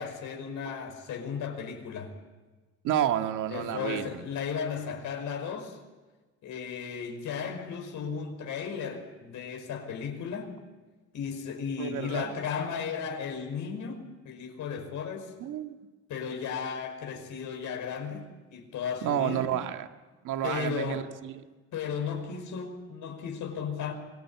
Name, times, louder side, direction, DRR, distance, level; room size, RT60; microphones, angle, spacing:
voice 1, 0.0-2.1 3.5-5.8 6.4-10.5 11.1-15.3 16.1-19.5 20.4-21.1 21.7-23.9, left 6 dB, 80° left, 5.5 m, -35 dB
voice 2, 2.8-4.2 11.8-12.3 15.4-15.7 19.0-19.9 20.2-21.4, right 10 dB, 90° right, 1.8 m, -30 dB
26.0 x 20.5 x 8.7 m
cardioid pair, 90°, 30 cm